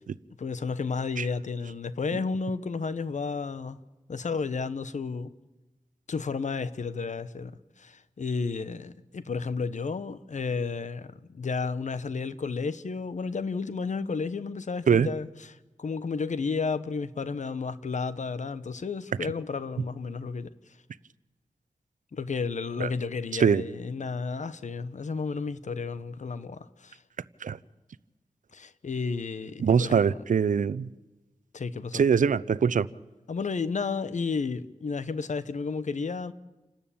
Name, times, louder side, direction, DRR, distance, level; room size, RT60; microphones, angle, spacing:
voice 1, 0.4-3.8 4.1-5.3 6.1-20.5 22.1-27.0 28.5-30.1 31.5-32.0 33.3-36.3, left 4 dB, 70° left, 1.0 m, -32 dB
voice 2, 29.6-30.9 31.9-32.9, right 6 dB, 85° right, 0.6 m, -23 dB
28.5 x 12.5 x 8.7 m
wide cardioid pair, 70°, 13 cm